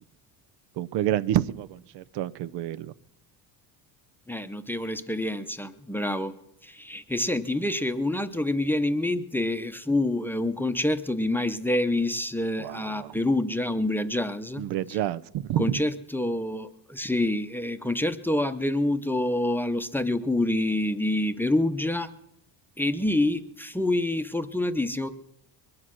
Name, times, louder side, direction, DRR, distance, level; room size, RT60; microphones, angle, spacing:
voice 1, 0.8-2.9 12.6-13.1 14.6-15.6, right 12 dB, 75° right, 17 dB, 0.7 m, -28 dB
voice 2, 4.3-6.3 6.6-14.6 14.9-15.0 15.6-22.1 22.8-25.1, left 1 dB, 5° left, 9 dB, 0.7 m, -27 dB
22.0 x 9.8 x 6.2 m, 0.86 s
cardioid pair, 125°, 42 cm